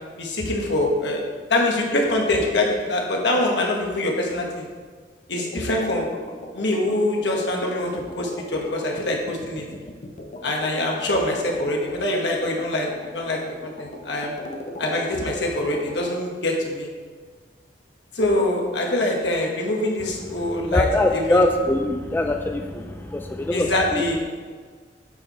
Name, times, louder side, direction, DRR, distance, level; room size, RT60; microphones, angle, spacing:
voice 1, 0.2-4.7 5.3-6.1 6.5-9.7 10.4-12.9 13.1-14.4 14.8-16.9 18.1-20.9 21.1-21.4 23.5-24.2, left 1 dB, 75° left, 0 dB, 1.3 m, -24 dB
sound 1, 5.4-16.2, equal, 40° left, 0.7 m, -39 dB
voice 2, 20.7-24.0, left 1 dB, 10° left, 3 dB, 0.3 m, -22 dB
8.6 x 4.5 x 4.2 m, 1.5 s
head